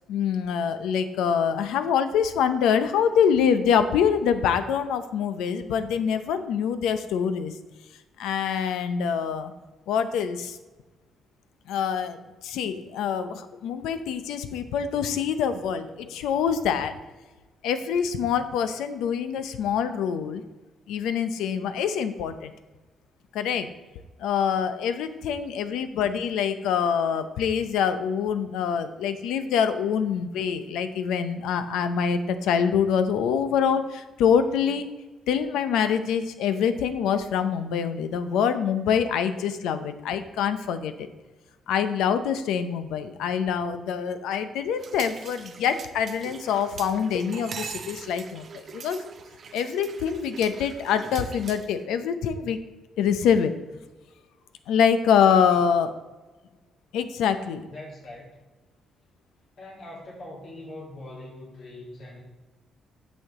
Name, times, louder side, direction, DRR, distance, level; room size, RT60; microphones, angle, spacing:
voice 1, 0.1-7.5 8.2-9.5 9.9-10.6 11.7-16.9 17.6-20.4 20.9-22.5 23.3-23.7 24.2-34.8 35.3-41.1 41.7-49.0 49.5-52.6 53.0-53.5 54.7-55.9 56.9-57.7, left 7 dB, 90° left, 10 dB, 0.6 m, -25 dB
sound 1, 44.8-51.8, right 6 dB, 50° right, 0.5 m, -41 dB
voice 2, 55.2-55.6 57.7-58.3 59.6-62.2, left 1 dB, 60° left, -4 dB, 2.1 m, -42 dB
9.3 x 6.4 x 3.7 m, 1.2 s
cardioid pair, 90°, 0 cm